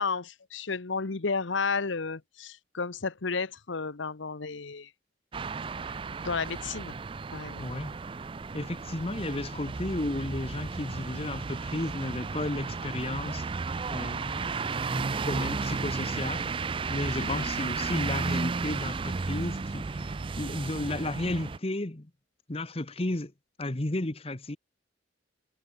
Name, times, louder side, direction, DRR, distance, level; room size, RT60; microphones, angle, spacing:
voice 1, 0.0-4.9 6.2-6.9 7.3-7.7 17.2-17.5, left 4 dB, 80° left, 1.0 m, -32 dB
sound 1, 5.3-21.6, right 4 dB, 25° right, 0.4 m, -33 dB
voice 2, 7.6-7.9 8.5-13.5 13.9-20.1 20.4-22.1 22.5-23.3 23.6-24.6, left 1 dB, 30° left, 1.1 m, -33 dB
head